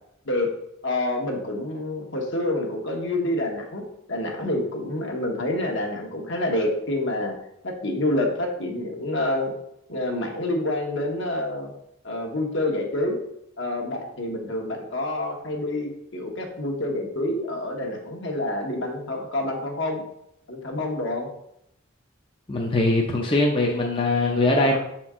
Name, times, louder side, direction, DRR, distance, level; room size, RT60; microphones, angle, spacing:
voice 1, 0.8-7.3 7.6-9.5 9.9-11.7 12.0-13.2 13.6-20.0 20.5-21.3, left 1 dB, 60° left, 1 dB, 1.3 m, -27 dB
voice 2, 22.5-24.8, left 2 dB, 25° left, -1 dB, 0.6 m, -21 dB
6.5 x 4.4 x 3.6 m, 0.77 s
head